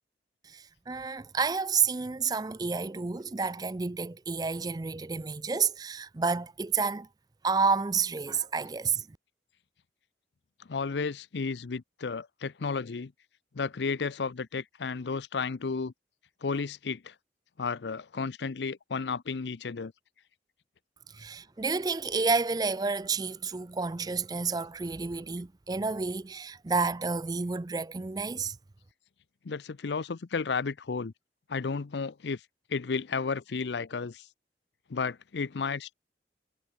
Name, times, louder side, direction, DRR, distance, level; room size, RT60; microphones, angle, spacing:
voice 1, 0.4-7.1 7.4-9.2 21.1-28.6, right 4 dB, 20° right, 0.4 m, -30 dB
voice 2, 10.7-13.1 13.5-15.9 16.4-17.1 17.6-19.9 29.4-31.1 31.5-32.4 32.7-34.3 34.9-35.9, left 5 dB, 80° left, 0.6 m, -33 dB
head